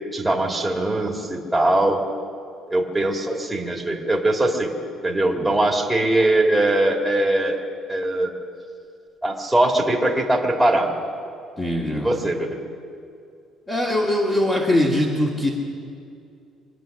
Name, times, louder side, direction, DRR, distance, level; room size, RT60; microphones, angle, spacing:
voice 1, 0.1-2.0 2.7-4.7 5.0-7.6 7.9-8.3 9.2-10.9 11.9-12.7, right 1 dB, 5° right, -1 dB, 1.9 m, -21 dB
voice 2, 11.6-12.3 13.7-15.5, left 1 dB, 20° left, -5 dB, 2.0 m, -22 dB
24.0 x 9.2 x 6.5 m, 2.4 s
cardioid pair, 135°, 0 cm